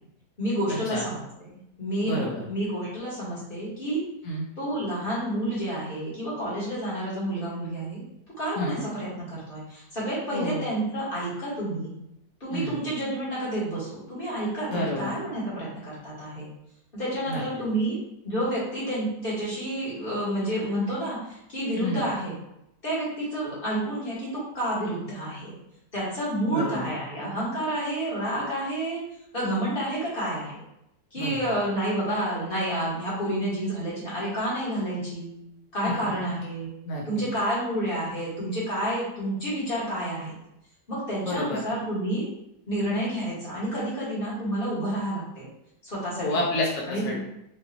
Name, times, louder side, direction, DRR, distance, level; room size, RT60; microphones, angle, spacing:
voice 1, 0.4-1.2 1.5-4.0 4.6-8.0 8.4-11.9 12.4-16.5 16.9-18.0 18.2-22.3 22.8-25.5 25.9-29.0 29.3-30.6 31.1-35.3 35.7-36.7 37.0-40.3 40.9-42.3 42.7-45.4 45.8-46.3 46.9-47.2, right 1 dB, 35° left, -8 dB, 1.8 m, -29 dB
voice 2, 2.0-2.4 4.2-4.5 8.6-8.8 10.3-10.6 12.5-12.8 14.7-15.1 17.3-17.4 21.8-22.0 26.5-26.9 31.2-31.5 35.8-35.9 36.8-37.0 41.2-41.6 46.2-47.2, left 1 dB, 55° left, -4 dB, 1.2 m, -29 dB
5.0 x 2.7 x 2.8 m, 0.81 s
omnidirectional pair, 1.8 m